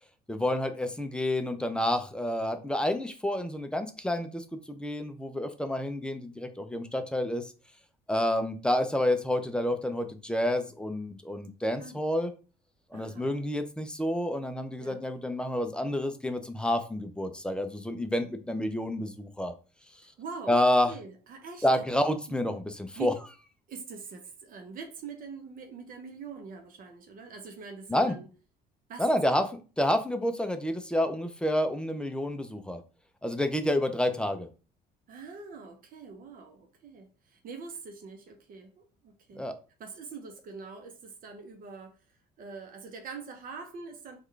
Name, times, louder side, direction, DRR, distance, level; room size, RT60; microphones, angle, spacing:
voice 1, 0.3-7.5 8.1-12.3 12.9-19.5 20.5-20.9 21.6-23.1 27.9-28.2 29.0-32.8 33.2-34.5 39.4-39.5, left 1 dB, 5° left, 0.5 m, -29 dB
voice 2, 12.9-13.4 14.8-15.0 20.0-21.9 23.0-23.2 23.7-28.3 28.9-29.0 35.1-39.5 39.8-42.0 42.4-44.2, right 4 dB, 55° right, 0.7 m, -44 dB
3.5 x 2.4 x 3.3 m
cardioid pair, 110°, 17 cm